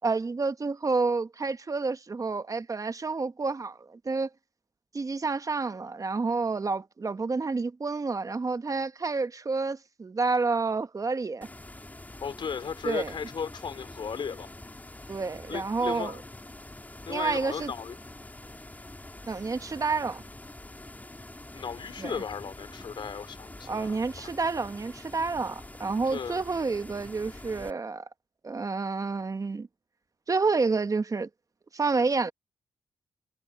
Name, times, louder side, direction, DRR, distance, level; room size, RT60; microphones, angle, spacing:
voice 1, 0.0-4.3 4.9-11.5 12.8-13.1 15.1-16.2 17.1-17.7 19.3-20.2 22.0-22.1 23.7-28.0 28.4-29.7 30.3-31.3 31.7-32.3, right 4 dB, 40° right, 1.1 m, -29 dB
sound 1, 11.4-27.7, left 2 dB, 20° left, 4.1 m, -46 dB
voice 2, 12.2-14.5 15.5-16.2 17.1-18.0 21.5-24.3 26.1-26.4, left 6 dB, 65° left, 3.6 m, -36 dB
supercardioid pair, 50°, 9 cm